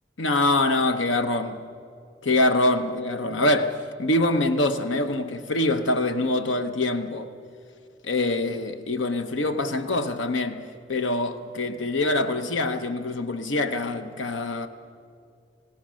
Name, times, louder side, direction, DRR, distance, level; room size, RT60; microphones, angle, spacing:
voice 1, 0.2-1.6 2.2-7.3 8.0-10.6 10.9-14.7, left 2 dB, 85° left, 0.9 m, -24 dB
30.0 x 17.0 x 6.3 m
head